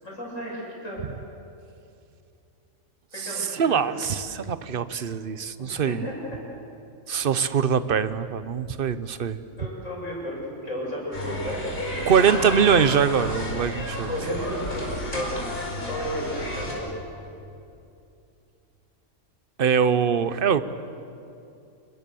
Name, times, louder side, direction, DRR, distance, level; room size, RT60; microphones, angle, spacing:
voice 1, 0.0-1.0 3.1-3.8 5.6-6.4 9.3-12.4 14.0-15.5 15.8-16.9, equal, 65° left, -4 dB, 8.1 m, -34 dB
voice 2, 3.2-6.0 7.1-9.4 12.1-14.1 19.6-20.6, right 7 dB, 45° right, 13 dB, 0.9 m, -23 dB
sound 1, 11.1-16.8, left 1 dB, 40° left, 5.1 m, -31 dB
28.5 x 21.5 x 7.0 m, 2.7 s
omnidirectional pair, 1.4 m